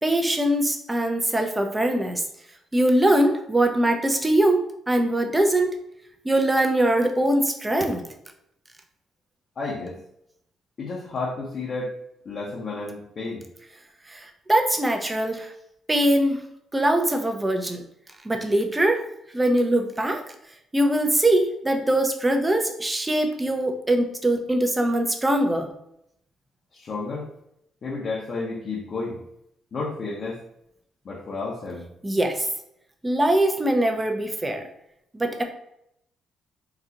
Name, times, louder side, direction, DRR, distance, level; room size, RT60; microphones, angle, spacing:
voice 1, 0.0-2.2 2.7-5.8 6.2-8.0 14.1-15.5 15.9-16.4 16.7-17.8 18.2-19.1 19.3-20.2 20.7-25.7 32.0-32.5 33.0-34.7 35.1-35.4, right 1 dB, 15° right, 4 dB, 0.5 m, -22 dB
voice 2, 9.6-10.0 10.8-11.9 12.3-13.4 26.7-27.3 27.8-29.2 29.7-30.4 31.0-31.8, left 3 dB, 50° left, -4 dB, 0.8 m, -31 dB
3.9 x 2.4 x 2.8 m, 0.77 s
cardioid pair, 90°, 0 cm